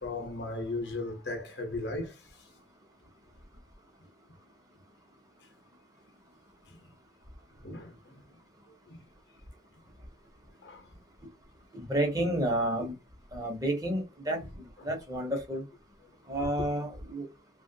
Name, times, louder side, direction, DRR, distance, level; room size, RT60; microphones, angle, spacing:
voice 1, 0.0-2.2 6.7-6.8 7.6-8.4 8.9-9.0 10.6-10.9 14.8-14.9 16.0-16.1, left 2 dB, 65° left, 0.9 m, -37 dB
voice 2, 11.7-12.9 13.3-15.6 16.3-17.3, right 1 dB, 20° right, 1.0 m, -31 dB
3.1 x 2.4 x 2.7 m
head